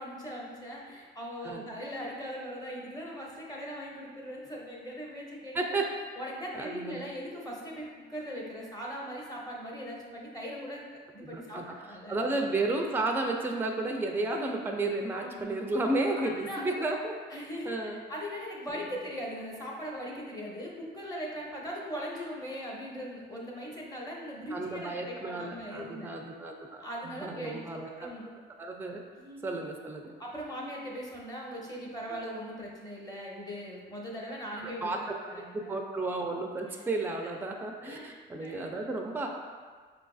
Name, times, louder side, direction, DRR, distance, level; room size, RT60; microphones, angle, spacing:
voice 1, 0.0-5.8 6.2-10.9 11.1-12.2 15.2-15.6 16.2-16.8 17.3-17.7 18.1-26.1 26.8-27.6 28.0-28.2 29.1-29.5 30.2-35.7 36.7-36.8 37.8-38.9, equal, 20° left, -3 dB, 0.7 m, -40 dB
voice 2, 5.5-5.9 6.6-7.0 11.2-11.6 12.1-17.1 17.6-18.0 18.7-18.8 24.5-28.1 28.6-29.0 29.4-30.1 32.1-32.2 34.6-35.1 35.5-39.3, right 2 dB, 10° right, 2 dB, 0.3 m, -32 dB
4.6 x 2.5 x 2.3 m, 1.5 s
cardioid pair, 90°, 20 cm